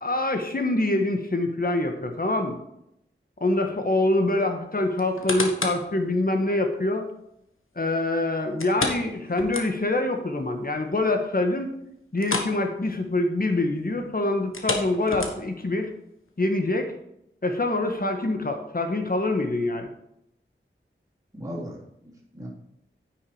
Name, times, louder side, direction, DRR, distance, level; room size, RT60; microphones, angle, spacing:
voice 1, 0.0-2.6 3.4-7.1 7.7-11.8 12.1-15.9 16.4-16.9 17.4-19.9, left 2 dB, 45° left, 5 dB, 1.4 m, -25 dB
sound 1, 5.0-5.9 6.4-6.5 8.6-10.1 10.4-10.5 10.9-11.0 12.2-12.6 12.9-13.1 14.4-15.7 16.3-16.4, left 3 dB, 85° left, 1.4 m, -30 dB
voice 2, 21.3-22.5, equal, 15° right, -5 dB, 3.4 m, -38 dB
9.5 x 6.2 x 4.9 m, 0.80 s
wide cardioid pair, 60°, 21 cm